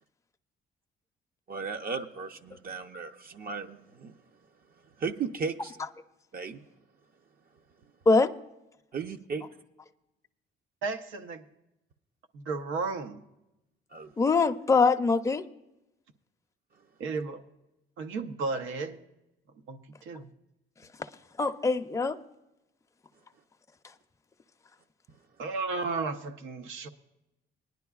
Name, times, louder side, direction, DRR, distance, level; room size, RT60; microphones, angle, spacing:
voice 1, 1.5-4.2 5.0-5.7 6.3-6.6 8.9-9.5 13.9-14.1, right 5 dB, 50° right, 0.6 m, -35 dB
voice 2, 10.8-11.4 12.3-13.2 17.0-17.4 18.0-19.0 19.7-20.3 25.4-26.9, right 4 dB, 90° right, 0.8 m, -33 dB
voice 3, 14.2-15.4 21.4-22.2, left 4 dB, 15° left, 0.5 m, -23 dB
19.5 x 10.5 x 2.4 m
cardioid pair, 90°, 20 cm